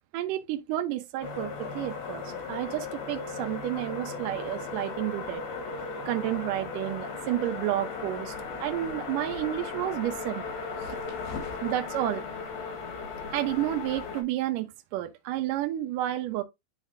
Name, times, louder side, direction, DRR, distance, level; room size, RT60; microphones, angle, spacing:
voice 1, 0.1-5.4 6.1-8.3 8.6-10.4 10.8-11.0 11.6-12.2 13.3-16.4, right 14 dB, 75° right, 2.3 m, -31 dB
sound 1, 1.2-14.2, left 4 dB, 90° left, 3.4 m, -36 dB
11.0 x 3.9 x 2.7 m
omnidirectional pair, 4.0 m